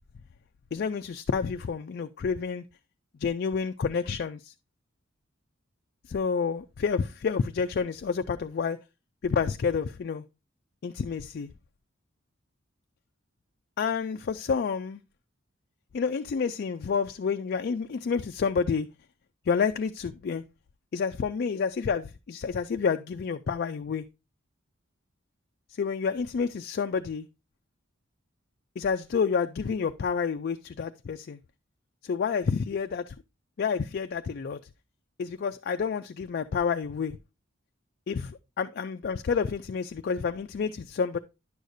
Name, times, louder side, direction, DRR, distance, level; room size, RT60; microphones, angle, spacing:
voice 1, 0.7-2.6 3.2-4.5 6.1-8.8 9.2-10.2 10.8-11.5 13.8-15.0 15.9-18.9 19.5-20.4 20.9-24.0 25.8-27.3 28.8-31.4 32.0-33.1 33.6-34.6 35.2-37.2 38.1-41.2, left 5 dB, 50° left, 0.4 m, -29 dB
10.0 x 6.5 x 2.6 m
head